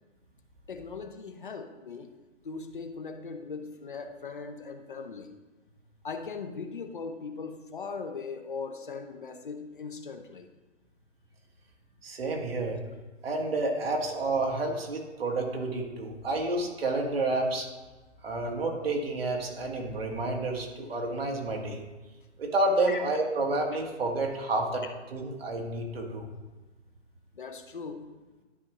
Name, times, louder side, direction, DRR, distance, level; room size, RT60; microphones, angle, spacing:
voice 1, 0.7-2.1 2.4-5.3 6.0-10.5 22.9-23.0 27.3-28.0, left 5 dB, 45° left, 6 dB, 0.8 m, -39 dB
voice 2, 12.0-12.8 13.2-17.7 18.2-21.8 22.4-24.8 25.1-26.3, right 2 dB, 55° right, 1 dB, 1.6 m, -30 dB
12.5 x 5.0 x 3.0 m, 1.2 s
hypercardioid pair, 180°, 36 cm